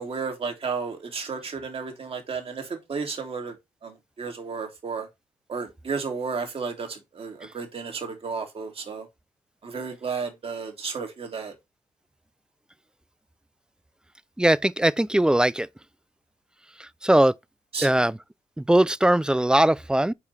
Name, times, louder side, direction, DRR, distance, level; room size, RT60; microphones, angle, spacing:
voice 1, 0.0-3.5 3.8-3.9 4.2-5.1 5.5-9.1 9.6-11.5 17.7-18.0, right 5 dB, 45° right, 3.0 m, -32 dB
voice 2, 14.4-15.7 17.0-17.3 17.8-18.2 18.6-20.1, right 1 dB, 5° right, 0.4 m, -20 dB
6.8 x 4.9 x 4.2 m
supercardioid pair, 70°, 13 cm